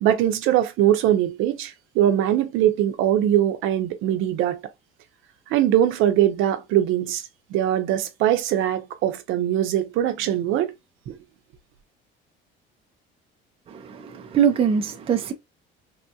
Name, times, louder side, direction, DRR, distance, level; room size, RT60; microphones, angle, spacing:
voice 1, 0.0-4.6 5.5-10.7 11.1-11.2, right 11 dB, 75° right, 0.7 m, -22 dB
voice 2, 13.7-15.3, right 8 dB, 30° right, 0.5 m, -23 dB
3.5 x 2.3 x 2.7 m
cardioid pair, 145°, 21 cm